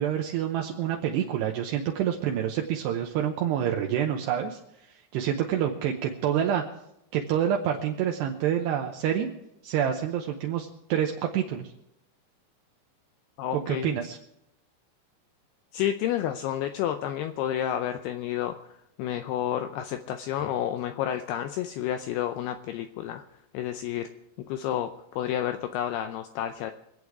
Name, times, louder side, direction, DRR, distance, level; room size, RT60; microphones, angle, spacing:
voice 1, 0.0-4.6 5.1-6.6 7.1-9.3 9.6-11.7 13.5-14.2, right 9 dB, 75° right, 2 dB, 2.8 m, -27 dB
voice 2, 13.4-13.9 15.7-23.2 23.5-24.1 24.5-26.7, left 11 dB, 85° left, 8 dB, 2.3 m, -30 dB
25.0 x 8.6 x 4.8 m, 0.82 s
omnidirectional pair, 5.2 m